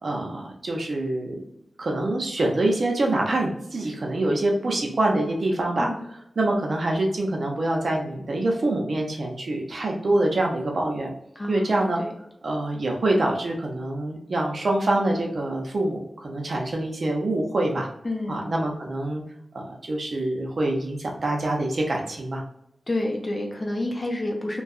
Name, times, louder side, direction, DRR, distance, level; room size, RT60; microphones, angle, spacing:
voice 1, 0.0-1.4 1.8-5.9 6.4-11.1 11.5-12.0 12.4-17.9 18.3-19.2 19.6-22.4, right 1 dB, 65° right, 0 dB, 0.6 m, -25 dB
voice 2, 11.4-12.1 18.0-18.5 22.9-24.6, left 1 dB, 35° left, 0 dB, 0.7 m, -29 dB
2.6 x 2.3 x 2.4 m, 0.78 s
cardioid pair, 55°, 0 cm